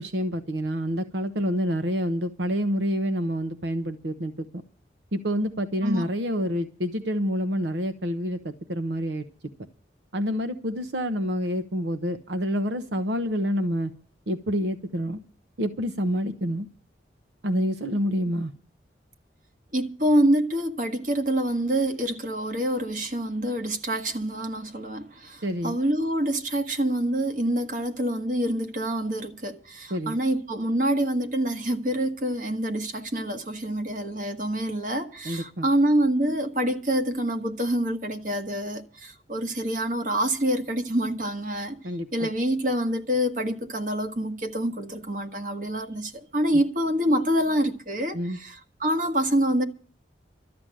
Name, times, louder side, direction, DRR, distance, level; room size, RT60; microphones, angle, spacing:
voice 1, 0.0-4.5 5.1-9.3 10.1-13.9 14.3-15.2 15.6-16.7 17.4-18.5 25.4-25.8 29.9-30.2 35.2-35.7 41.8-42.3 48.1-48.4, equal, 75° right, 0.9 m, -27 dB
voice 2, 19.7-41.8 42.1-49.6, right 1 dB, 45° right, 1.5 m, -26 dB
13.0 x 7.7 x 9.9 m
head